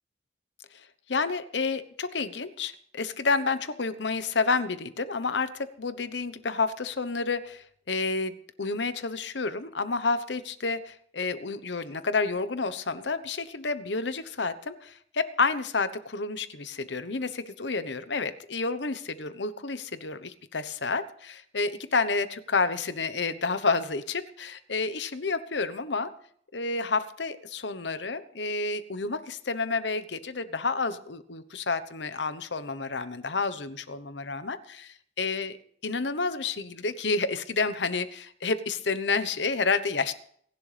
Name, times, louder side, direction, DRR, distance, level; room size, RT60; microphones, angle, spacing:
voice 1, 1.1-26.1 26.5-35.6 35.8-40.1, left 4 dB, 70° left, 12 dB, 1.0 m, -30 dB
28.5 x 11.5 x 3.4 m, 0.63 s
head